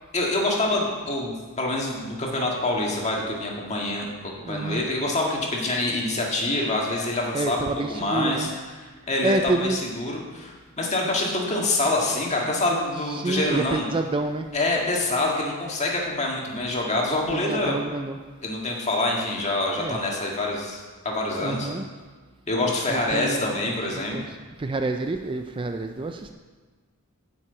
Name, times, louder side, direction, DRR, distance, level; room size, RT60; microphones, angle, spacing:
voice 1, 0.1-8.5 9.1-13.9 14.5-17.8 18.4-21.7 22.5-24.2, left 2 dB, 30° left, -2 dB, 1.9 m, -26 dB
voice 2, 4.5-4.8 7.3-8.5 9.2-9.8 13.1-14.5 17.3-18.2 19.8-20.0 21.4-21.9 22.6-23.5 23.9-24.3 24.6-26.3, right 2 dB, 25° right, 6 dB, 0.4 m, -28 dB
9.2 x 6.0 x 8.0 m, 1.4 s
head